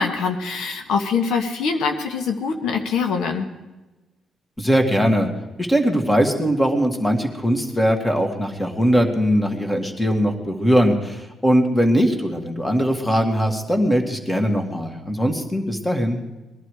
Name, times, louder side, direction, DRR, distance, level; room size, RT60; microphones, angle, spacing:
voice 1, 0.0-3.5, left 5 dB, 80° left, 5 dB, 1.4 m, -23 dB
voice 2, 4.6-5.3 5.6-16.2, equal, 10° left, 3 dB, 2.2 m, -20 dB
21.0 x 11.5 x 4.9 m, 1.1 s
cardioid pair, 90°, 0 cm